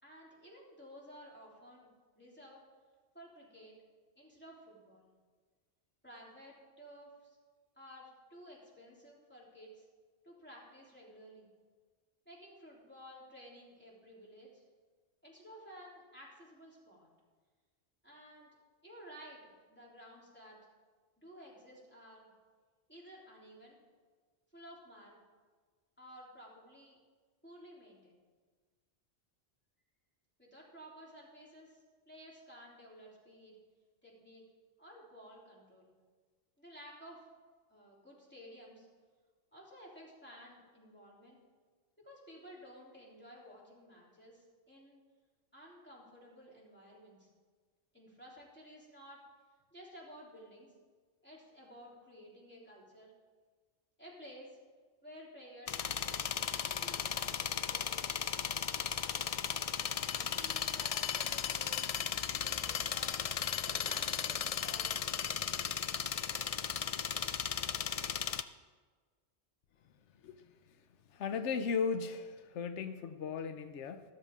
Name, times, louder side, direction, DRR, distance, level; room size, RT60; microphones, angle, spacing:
voice 1, 0.0-1.9 2.1-2.6 3.1-3.7 4.2-5.1 6.0-7.4 7.8-9.9 10.2-11.5 12.2-14.6 15.2-17.1 18.0-18.5 18.8-20.6 21.2-22.3 22.9-23.8 24.5-25.2 26.0-27.0 27.4-28.2 30.4-31.8 32.1-33.5 34.0-34.4 34.8-35.9 36.6-37.3 37.7-38.9 39.5-41.4 42.0-45.0 45.5-47.3 47.9-49.2 49.7-50.7 51.2-53.1 54.0-54.6 55.0-56.5 56.8-58.1 60.1-63.1 63.6-65.6, equal, 10° left, -5 dB, 3.3 m, -54 dB
sound 1, 55.7-68.4, left 8 dB, 75° left, 0.3 m, -36 dB
voice 2, 71.1-74.0, left 5 dB, 90° left, 10 dB, 1.0 m, -36 dB
14.0 x 12.5 x 3.6 m, 1.5 s
omnidirectional pair, 1.2 m